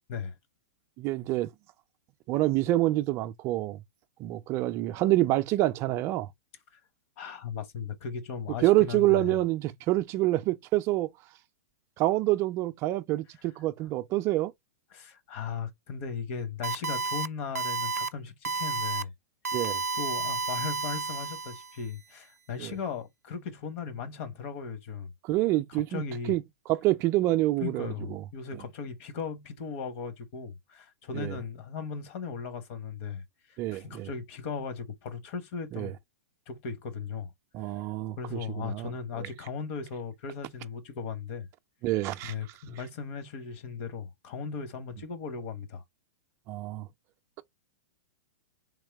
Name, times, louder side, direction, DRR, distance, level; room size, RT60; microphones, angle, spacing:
voice 1, 1.0-1.5 2.3-3.8 4.2-6.3 8.6-11.1 12.0-14.5 19.5-19.8 22.6-22.7 25.2-26.0 26.3-26.4 26.7-28.2 31.1-31.4 33.6-34.1 35.7-35.9 37.5-38.9 39.2-39.3 41.8-42.3 46.5-46.9, right 16 dB, 35° right, 0.4 m, -27 dB
voice 2, 7.2-9.4 14.9-19.1 19.9-25.1 25.7-26.4 27.6-33.2 33.5-35.9 36.5-37.3 37.6-37.7 38.2-41.5 42.2-45.8, left 6 dB, 50° left, 1.1 m, -37 dB
sound 1, 16.6-17.3 17.5-18.1 18.4-19.0 19.4-21.8, right 4 dB, 90° right, 0.5 m, -31 dB
3.6 x 3.1 x 3.4 m
hypercardioid pair, 115°, 8 cm